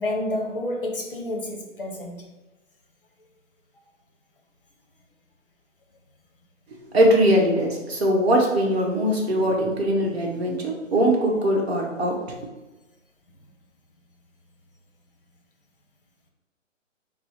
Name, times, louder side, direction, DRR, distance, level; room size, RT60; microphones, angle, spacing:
voice 1, 0.0-2.3, left 1 dB, 45° left, 0.6 m, -29 dB
voice 2, 6.9-12.4, equal, 55° right, 1.0 m, -21 dB
4.2 x 2.0 x 4.4 m
hypercardioid pair, 175°, 39 cm